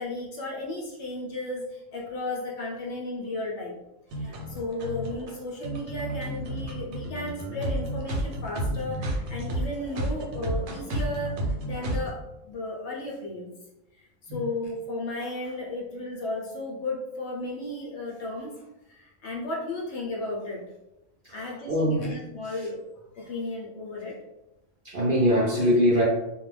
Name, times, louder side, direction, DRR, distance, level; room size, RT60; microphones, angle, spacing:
voice 1, 0.0-3.8 4.2-11.4 11.6-13.5 14.2-18.6 18.9-20.6 21.3-22.8 23.1-24.2, left 2 dB, 65° left, -3 dB, 0.7 m, -34 dB
sound 1, 4.1-12.1, right 1 dB, 80° right, 1.0 m, -31 dB
voice 2, 21.3-22.0 24.8-26.0, equal, 60° right, -6 dB, 0.5 m, -22 dB
2.3 x 2.1 x 3.2 m, 0.95 s
omnidirectional pair, 1.5 m